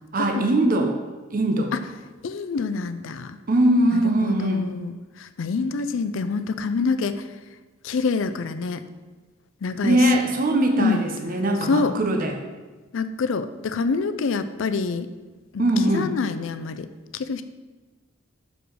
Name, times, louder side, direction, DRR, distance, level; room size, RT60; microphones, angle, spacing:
voice 1, 0.1-0.9 1.3-1.7 3.5-4.7 9.8-12.4 15.6-16.1, right 1 dB, 45° right, 3 dB, 0.7 m, -21 dB
voice 2, 2.2-3.4 3.9-4.9 5.2-7.2 7.8-8.8 9.6-10.0 10.8-11.0 11.6-11.9 12.9-15.1 15.5-15.7 15.9-16.9 17.1-17.4, left 4 dB, 65° left, 11 dB, 0.4 m, -26 dB
6.3 x 5.0 x 4.7 m, 1.3 s
head